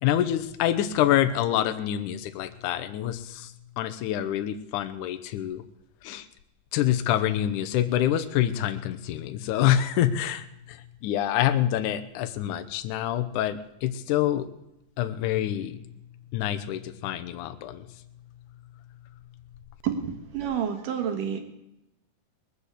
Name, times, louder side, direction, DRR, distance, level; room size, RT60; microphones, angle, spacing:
voice 1, 0.0-5.6 6.0-6.3 6.7-14.5 15.0-15.8 16.3-17.9, left 11 dB, 75° left, 9 dB, 2.1 m, -26 dB
voice 2, 19.8-21.4, right 8 dB, 75° right, 5 dB, 3.2 m, -29 dB
20.0 x 8.2 x 8.2 m, 0.85 s
omnidirectional pair, 3.8 m